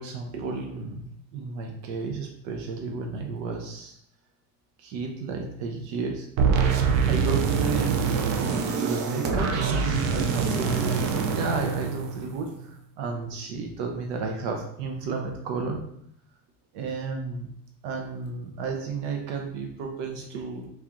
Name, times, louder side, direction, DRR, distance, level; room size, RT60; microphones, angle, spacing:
voice 1, 0.0-4.0 4.8-6.7 7.1-8.5 8.8-15.8 16.7-17.5 17.8-20.7, right 4 dB, 70° right, 2 dB, 0.8 m, -33 dB
sound 1, 6.4-12.5, right 5 dB, 40° right, 0.4 m, -25 dB
3.6 x 3.2 x 3.0 m, 0.70 s
cardioid pair, 160°, 39 cm